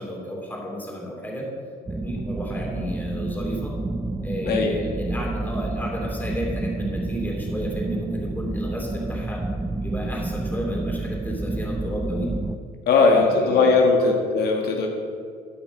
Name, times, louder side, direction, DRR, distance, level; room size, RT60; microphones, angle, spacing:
voice 1, 0.0-1.5 1.9-3.7 4.2-9.4 9.8-12.3 12.9-14.1, equal, 10° left, -1 dB, 2.7 m, -33 dB
sound 1, 1.9-12.6, right 2 dB, 10° right, 0.4 m, -29 dB
voice 2, 4.4-4.8 12.9-14.9, left 4 dB, 70° left, 1 dB, 1.4 m, -19 dB
13.0 x 6.0 x 5.2 m, 2.2 s
cardioid pair, 110°, 17 cm